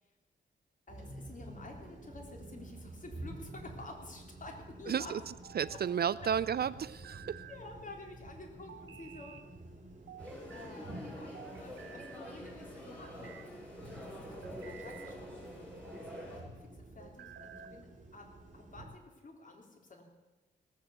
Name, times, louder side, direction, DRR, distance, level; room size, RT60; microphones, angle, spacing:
voice 1, 0.9-5.2 5.7-5.8 7.5-9.4 10.5-13.4 14.2-20.0, left 2 dB, 40° left, 1 dB, 3.5 m, -51 dB
sound 1, 0.9-18.8, right 1 dB, 40° right, 3.5 m, -50 dB
sound 2, 3.2-3.9 5.2-6.0 6.8-7.6 8.7-9.5 10.1-10.7 11.3-12.2 12.8-13.5 14.2-15.2 15.7-16.2 17.0-17.8, right 7 dB, 90° right, 1.0 m, -53 dB
voice 2, 4.9-5.2 5.6-7.4, right 8 dB, 55° right, 18 dB, 0.4 m, -32 dB
sound 3, 10.2-16.4, equal, 5° left, 7.0 m, -47 dB
18.0 x 8.2 x 8.0 m, 1.1 s
cardioid pair, 80°, 20 cm